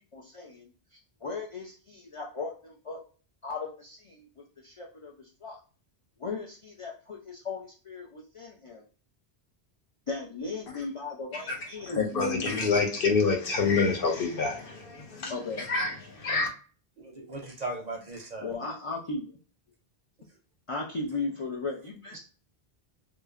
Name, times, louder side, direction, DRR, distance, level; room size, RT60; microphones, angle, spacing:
voice 1, 0.1-3.0 3.4-5.6 6.2-8.8 10.1-12.6 15.3-15.6 18.4-19.4 20.7-22.2, left 3 dB, 45° left, 0.4 m, -37 dB
voice 2, 11.8-16.5, left 4 dB, 60° left, 0.9 m, -27 dB
voice 3, 17.0-18.6, right 2 dB, 50° right, 0.6 m, -38 dB
3.0 x 2.0 x 2.4 m
omnidirectional pair, 1.1 m